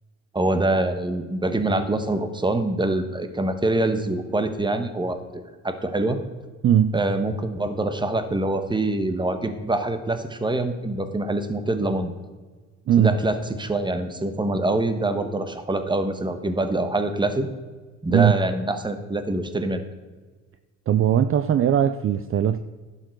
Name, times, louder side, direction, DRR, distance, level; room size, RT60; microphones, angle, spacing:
voice 1, 0.3-6.2 6.9-12.1 13.0-17.5 18.0-19.8, right 2 dB, 15° right, 8 dB, 1.2 m, -25 dB
voice 2, 6.6-7.0 12.9-13.1 18.1-18.4 20.9-22.6, right 9 dB, 45° right, 12 dB, 0.5 m, -19 dB
11.0 x 7.2 x 4.6 m, 1.3 s
cardioid pair, 90°, 30 cm